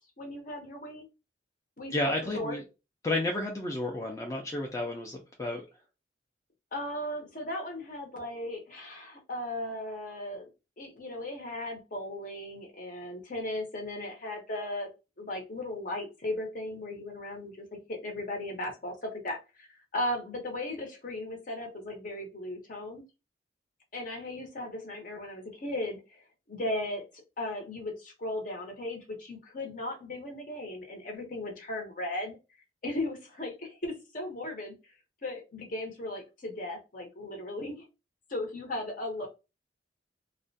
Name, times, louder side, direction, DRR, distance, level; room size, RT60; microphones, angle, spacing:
voice 1, 0.2-1.0 1.8-2.6 6.7-10.5 10.8-14.9 15.2-19.7 19.9-23.0 23.9-32.4 32.8-34.7 35.2-37.8 38.3-39.3, left 1 dB, 45° left, 2 dB, 0.7 m, -37 dB
voice 2, 1.9-2.6 3.0-5.6, left 2 dB, 20° left, 1 dB, 0.3 m, -31 dB
2.3 x 2.1 x 2.6 m, 0.27 s
head